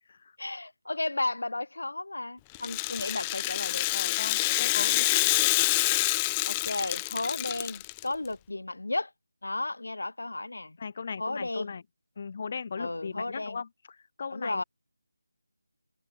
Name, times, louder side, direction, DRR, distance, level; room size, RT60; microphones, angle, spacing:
voice 1, 0.4-4.2 4.7-5.3 6.4-9.1 9.4-10.8 11.2-11.7 12.8-13.6 14.3-14.6, left 2 dB, 80° left, 1.4 m, -34 dB
Rattle (instrument), 2.5-8.0, left 22 dB, 10° left, 0.4 m, -27 dB
voice 2, 4.2-5.1 10.8-11.8 12.2-14.6, left 5 dB, 35° left, 0.9 m, -38 dB
figure-of-eight pair, 170°, 0 cm